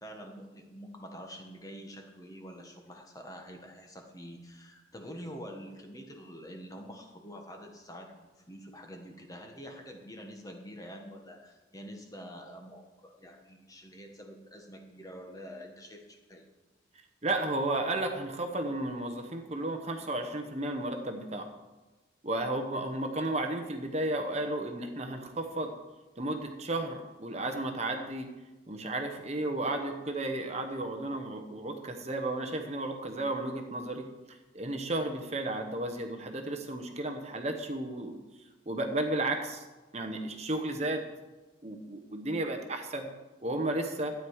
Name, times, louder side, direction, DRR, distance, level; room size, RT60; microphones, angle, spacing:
voice 1, 0.0-8.1 8.5-16.4, equal, 15° left, 3 dB, 1.2 m, -46 dB
voice 2, 17.2-21.5 22.2-25.7 26.2-28.3 28.7-38.2 38.7-39.6 39.9-41.0 41.6-43.1 43.4-44.1, right 2 dB, 35° right, 5 dB, 1.0 m, -33 dB
13.0 x 9.3 x 4.8 m, 1.2 s
head